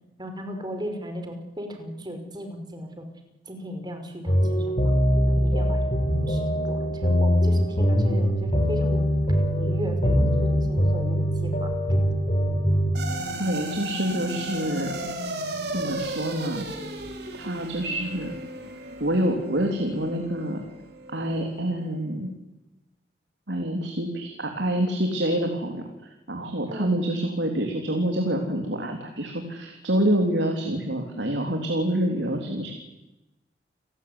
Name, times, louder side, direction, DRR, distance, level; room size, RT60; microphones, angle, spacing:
voice 1, 0.2-3.1 3.5-4.9 5.3-9.1 9.6-11.7 26.7-26.9, equal, 25° right, 5 dB, 5.2 m, -36 dB
sound 1, 4.3-12.9, equal, 40° left, 5.1 m, -22 dB
sound 2, 12.9-21.5, right 1 dB, 65° right, 4.4 m, -34 dB
voice 2, 13.4-15.0 15.7-16.7 17.3-18.3 19.0-20.6 21.1-22.3 23.5-25.8 26.3-32.7, right 1 dB, 85° right, 3 dB, 3.7 m, -27 dB
29.0 x 18.0 x 9.9 m, 0.99 s
head